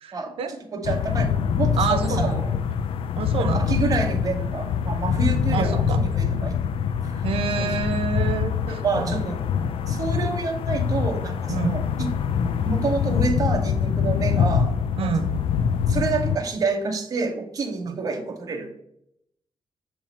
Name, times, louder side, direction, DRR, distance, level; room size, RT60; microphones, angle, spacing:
voice 1, 0.0-0.5 1.8-2.4 3.2-3.8 5.5-6.0 7.2-9.1 11.5-11.8 15.0-15.4 17.9-18.0, right 5 dB, 90° right, 8 dB, 0.7 m, -27 dB
voice 2, 0.7-2.5 3.4-6.7 7.0-7.2 7.6-7.7 8.7-9.4 9.9-12.1 12.6-15.1 15.9-18.8, right 4 dB, 40° right, 3 dB, 0.9 m, -28 dB
sound 1, 0.8-16.4, left 7 dB, 75° left, 0.3 m, -24 dB
7.0 x 3.0 x 5.4 m, 0.77 s
wide cardioid pair, 145°, 9 cm